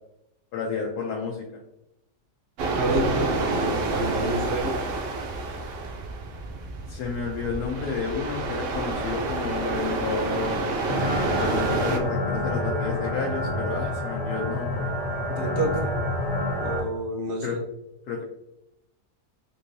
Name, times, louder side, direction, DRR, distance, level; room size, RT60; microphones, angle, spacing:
voice 1, 0.5-1.6 6.9-10.6 11.4-14.9 17.4-17.6 18.1-18.2, left 5 dB, 85° left, -1 dB, 1.1 m, -31 dB
sound 1, 2.6-12.0, right 3 dB, 90° right, 0.5 m, -29 dB
voice 2, 2.7-4.7 15.3-15.9 16.6-17.6, right 1 dB, 60° right, 2 dB, 0.8 m, -28 dB
sound 2, 10.9-16.8, left 1 dB, 55° left, 1.3 m, -28 dB
3.6 x 2.7 x 2.6 m, 0.85 s
omnidirectional pair, 1.7 m